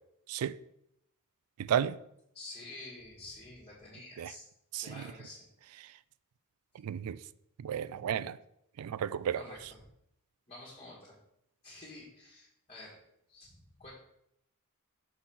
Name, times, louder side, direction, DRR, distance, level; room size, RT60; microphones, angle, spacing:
voice 1, 2.3-4.5 4.8-5.5 9.3-9.8 10.5-11.2 11.6-13.0 13.3-13.9, left 2 dB, 30° left, 1.6 m, -49 dB
voice 2, 6.8-7.2 7.6-8.4 8.8-9.4, right 9 dB, 80° right, 0.3 m, -32 dB
6.4 x 4.0 x 5.6 m
head